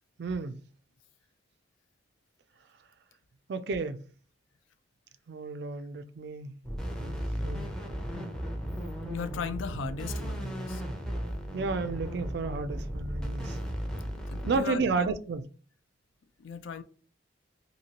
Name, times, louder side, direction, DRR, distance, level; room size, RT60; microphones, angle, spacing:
voice 1, 0.2-0.6 3.5-4.0 5.3-6.6 7.0-7.2 7.4-7.7 11.5-13.6 14.5-15.4, right 4 dB, 55° right, 0.3 m, -32 dB
sound 1, 6.6-14.7, equal, 5° left, 0.5 m, -35 dB
voice 2, 9.1-10.8 14.1-15.1 16.4-16.8, left 6 dB, 75° left, 0.4 m, -37 dB
2.9 x 2.7 x 2.8 m
head